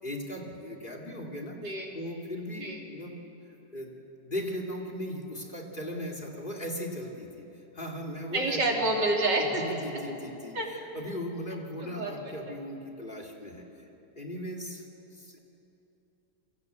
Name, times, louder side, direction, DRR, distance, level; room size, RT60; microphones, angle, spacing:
voice 1, 0.0-1.6 1.9-3.1 3.7-4.0 4.2-7.3 7.7-8.8 9.4-13.6 14.2-14.8 15.1-15.4, equal, 30° left, 2 dB, 3.0 m, -38 dB
voice 2, 1.6-1.9 2.6-2.8 8.3-9.6 10.5-10.7 11.8-12.1, right 2 dB, 80° right, 0 dB, 4.1 m, -28 dB
29.0 x 24.0 x 8.3 m, 3.0 s
omnidirectional pair, 1.9 m